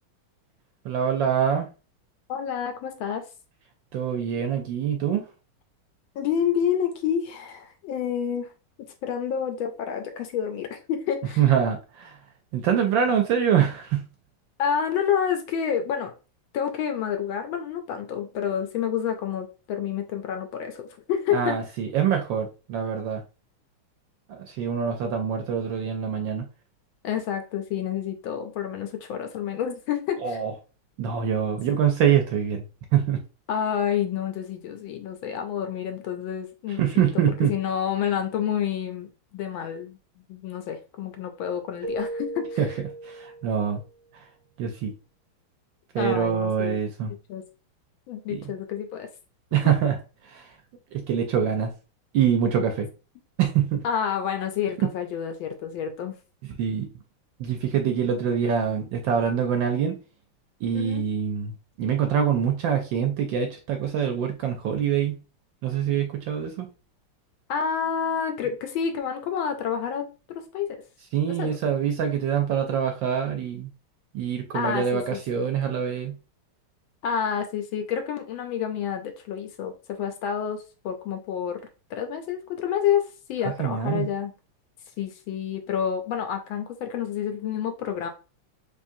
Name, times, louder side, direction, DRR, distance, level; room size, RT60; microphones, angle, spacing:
voice 1, 0.8-1.7 3.9-5.2 11.4-12.2 12.5-14.0 21.3-23.2 24.3-26.4 30.2-30.5 31.0-32.6 32.9-33.2 36.8-37.5 42.6-42.7 43.0-43.8 44.6-44.9 45.9-47.1 48.3-48.4 49.5-50.0 50.3-50.4 50.9-51.7 52.1-52.9 53.4-53.8 56.6-56.9 57.4-60.0 60.6-61.5 61.8-65.1 65.6-66.7 71.1-73.7 74.1-76.1 83.6-84.1, right 8 dB, 75° right, 5 dB, 1.1 m, -24 dB
voice 2, 2.3-3.3 6.1-8.5 9.0-11.4 14.6-16.1 16.5-21.6 27.0-30.4 33.5-36.9 37.4-40.0 40.3-42.7 46.0-46.8 47.3-47.4 48.1-49.1 49.6-49.7 53.8-56.1 60.7-61.1 67.5-70.8 71.2-71.6 74.5-75.2 77.0-84.3 85.0-88.1, left 8 dB, 75° left, 6 dB, 1.2 m, -29 dB
Keyboard (musical), 41.8-43.8, right 2 dB, 45° right, 0.9 m, -35 dB
3.6 x 3.3 x 2.6 m, 0.33 s
omnidirectional pair, 2.4 m